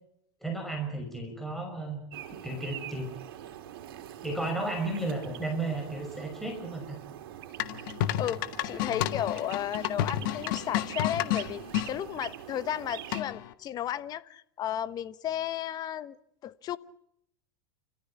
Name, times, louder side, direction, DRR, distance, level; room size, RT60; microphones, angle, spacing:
voice 1, 0.4-2.0 2.4-3.1 4.2-7.0, right 2 dB, ahead, 5.9 m, -33 dB
sound 1, 2.1-13.2, right 11 dB, 75° right, 3.5 m, -44 dB
sound 2, 7.6-11.9 13.1-13.5, left 13 dB, 65° left, 1.8 m, -31 dB
voice 2, 8.2-16.2 16.4-16.8, left 11 dB, 30° left, 1.3 m, -34 dB
29.5 x 14.5 x 9.9 m
supercardioid pair, 135°, 12 cm